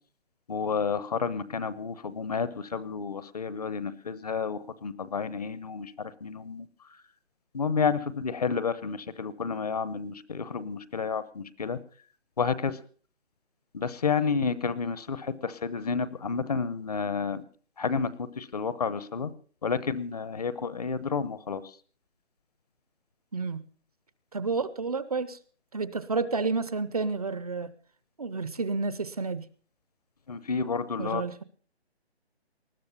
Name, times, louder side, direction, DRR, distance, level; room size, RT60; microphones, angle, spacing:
voice 1, 0.5-6.7 7.5-11.8 12.4-12.8 13.7-17.4 17.8-19.3 19.6-21.6 30.3-31.2, left 5 dB, 35° left, 17 dB, 0.9 m, -30 dB
voice 2, 23.3-23.6 24.3-25.4 25.7-27.7 28.2-29.5 31.0-31.4, right 4 dB, 35° right, 16 dB, 0.7 m, -30 dB
20.0 x 13.0 x 5.5 m, 0.43 s
hypercardioid pair, 170°, 33 cm